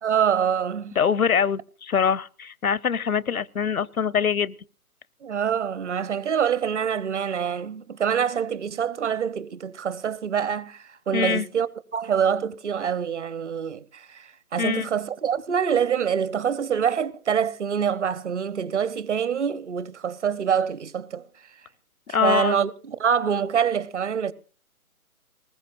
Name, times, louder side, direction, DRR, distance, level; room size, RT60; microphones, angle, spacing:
voice 1, 0.0-0.9 5.2-21.3 22.2-24.3, right 7 dB, 50° right, 0.9 m, -25 dB
voice 2, 1.0-4.5 11.1-11.5 14.6-14.9 22.1-22.6, left 6 dB, 75° left, 0.8 m, -23 dB
23.0 x 20.0 x 2.6 m
figure-of-eight pair, 140°, 44 cm